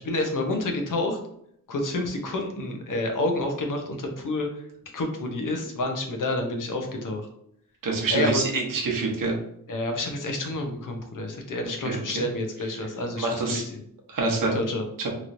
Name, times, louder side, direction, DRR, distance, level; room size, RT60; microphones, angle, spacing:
voice 1, 0.0-1.2 1.7-4.5 4.9-7.2 8.1-8.6 9.7-13.6 14.5-14.8, left 2 dB, 65° left, 3 dB, 0.7 m, -28 dB
voice 2, 7.8-9.3 11.8-12.2 13.2-13.6 14.1-14.6 15.0-15.1, right 3 dB, 70° right, 0 dB, 0.9 m, -26 dB
3.0 x 2.9 x 2.5 m, 0.71 s
wide cardioid pair, 120°, 35 cm